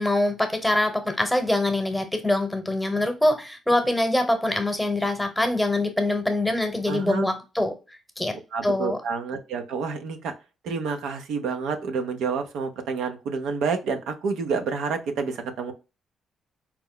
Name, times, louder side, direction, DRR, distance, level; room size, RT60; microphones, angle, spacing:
voice 1, 0.0-7.7 8.2-8.3 8.6-9.0, left 1 dB, 5° left, 0.9 m, -24 dB
voice 2, 6.9-7.3 8.5-10.3 10.6-15.7, right 5 dB, 85° right, 0.6 m, -29 dB
4.4 x 2.0 x 3.7 m
cardioid pair, 90°, 0 cm